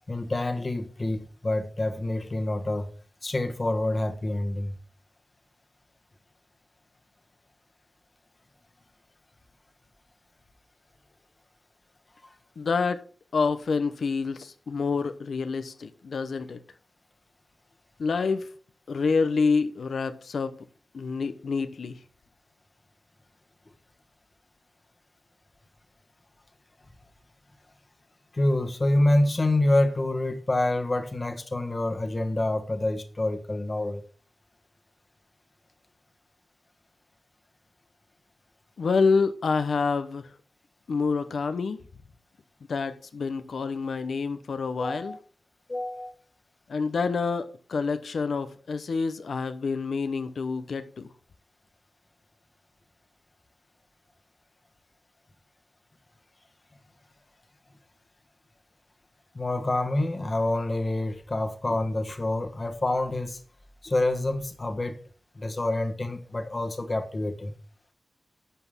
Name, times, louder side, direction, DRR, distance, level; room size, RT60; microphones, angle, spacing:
voice 1, 0.1-2.9 3.2-4.7 28.3-34.0 44.8-45.2 45.7-46.1 59.3-63.4 63.8-65.0 65.3-67.5, left 1 dB, 30° left, 1.3 m, -27 dB
voice 2, 12.6-13.0 13.3-16.6 18.0-18.5 18.9-20.6 20.9-22.0 38.8-40.3 40.9-41.8 42.7-45.2 46.7-51.1, left 4 dB, 85° left, 0.8 m, -27 dB
11.5 x 8.3 x 3.6 m
wide cardioid pair, 140°, 0 cm